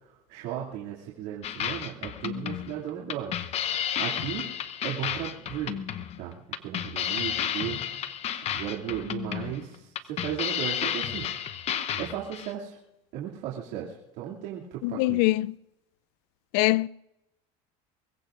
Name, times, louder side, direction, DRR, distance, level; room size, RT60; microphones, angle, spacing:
voice 1, 0.3-3.4 3.7-4.5 4.8-5.8 6.2-11.4 12.0-12.8 13.1-15.3, right 10 dB, 70° right, 2.6 m, -36 dB
sound 1, 1.4-12.5, left 9 dB, 40° left, 0.9 m, -32 dB
voice 2, 14.8-15.5 16.5-16.9, left 19 dB, 70° left, 0.4 m, -23 dB
24.0 x 21.0 x 2.5 m
cardioid pair, 135°, 17 cm